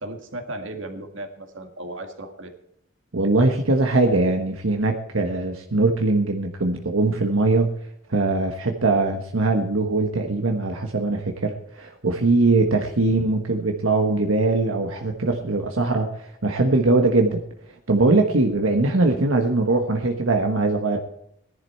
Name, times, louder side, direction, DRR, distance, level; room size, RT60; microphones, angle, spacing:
voice 1, 0.0-2.5, right 1 dB, 65° right, 6 dB, 1.9 m, -35 dB
voice 2, 3.1-7.8 8.1-17.4 17.9-21.0, right 2 dB, 85° right, 4 dB, 1.4 m, -21 dB
17.5 x 11.0 x 4.4 m, 0.75 s
head